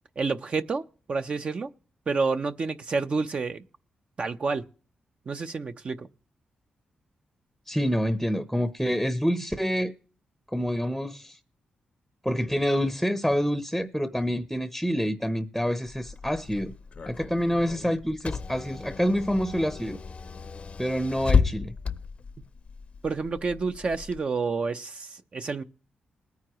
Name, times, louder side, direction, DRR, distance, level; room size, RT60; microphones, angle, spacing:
voice 1, 0.2-1.7 2.1-3.6 4.2-4.6 5.3-6.1 23.0-25.6, right 4 dB, 45° right, 0.7 m, -29 dB
voice 2, 7.7-9.9 10.5-11.4 12.2-16.7 17.1-20.0 20.8-21.7, equal, ahead, 0.7 m, -27 dB
Car / Engine, 15.9-24.2, left 5 dB, 45° left, 0.6 m, -32 dB
20.5 x 9.4 x 3.0 m
cardioid pair, 90°, 3 cm